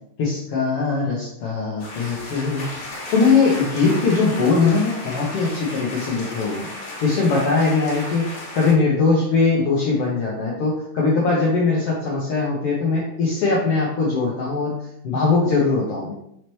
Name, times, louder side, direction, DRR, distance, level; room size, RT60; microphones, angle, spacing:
voice 1, 0.2-2.7 3.1-6.7 7.0-8.3 8.5-16.1, left 4 dB, 85° left, -4 dB, 1.3 m, -21 dB
sound 1, 1.8-8.7, left 1 dB, 60° left, 1.8 m, -34 dB
5.6 x 3.1 x 3.0 m, 0.74 s
omnidirectional pair, 3.7 m